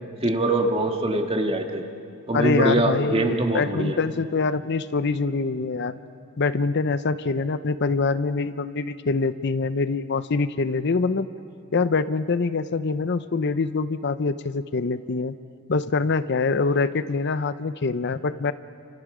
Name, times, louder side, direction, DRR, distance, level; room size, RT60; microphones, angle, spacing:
voice 1, 0.2-1.8 2.3-4.0, right 1 dB, 30° right, 4 dB, 1.8 m, -23 dB
voice 2, 2.3-6.0 6.4-11.3 11.7-15.3 15.7-18.5, left 4 dB, 55° left, 13 dB, 0.6 m, -24 dB
30.0 x 27.0 x 5.0 m, 2.4 s
head